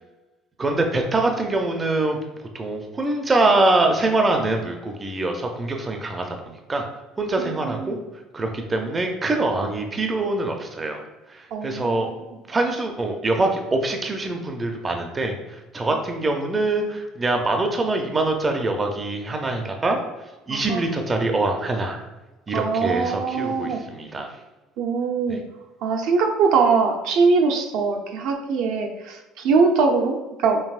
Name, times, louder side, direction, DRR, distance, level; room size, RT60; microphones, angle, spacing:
voice 1, 0.6-2.2 2.5-6.9 7.2-8.0 8.3-11.0 11.3-12.1 12.5-20.0 20.5-22.0 22.5-24.3 25.3-25.4, right 2 dB, 20° right, 3 dB, 0.5 m, -24 dB
voice 2, 7.4-8.0 11.5-12.4 20.5-20.8 22.5-23.8 24.8-25.4 25.8-30.6, right 4 dB, 70° right, 3 dB, 0.6 m, -22 dB
5.4 x 2.6 x 2.4 m, 1.1 s
cardioid pair, 125°, 0 cm